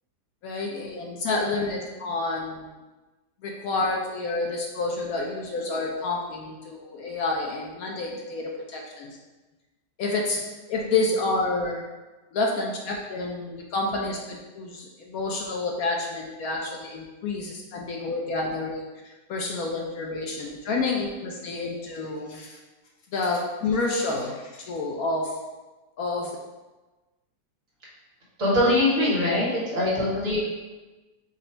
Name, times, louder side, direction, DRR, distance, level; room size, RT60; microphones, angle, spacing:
voice 1, 0.4-2.7 3.4-9.2 10.0-10.4 10.7-11.9 12.3-18.8 19.3-22.6 23.1-25.3 26.0-26.3, left 3 dB, 70° left, 0 dB, 1.0 m, -29 dB
voice 2, 28.4-30.5, left 1 dB, 55° right, -6 dB, 1.7 m, -22 dB
4.9 x 2.4 x 4.3 m, 1.2 s
omnidirectional pair, 1.7 m